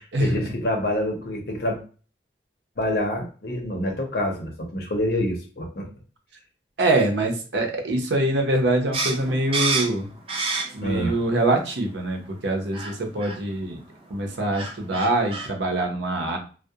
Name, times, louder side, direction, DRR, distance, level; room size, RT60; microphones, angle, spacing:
voice 1, 0.0-1.8 2.8-5.9 10.8-11.2, left 1 dB, 60° left, 1 dB, 0.7 m, -27 dB
voice 2, 6.8-10.1 10.7-13.8 14.1-16.4, right 2 dB, 85° right, 2 dB, 0.7 m, -24 dB
sound 1, 8.9-11.0 11.4-12.1 12.7-12.9 13.2-13.4 14.2-14.3 14.5-15.5, right 3 dB, 30° right, 0.4 m, -28 dB
2.3 x 2.0 x 2.7 m, 0.37 s
head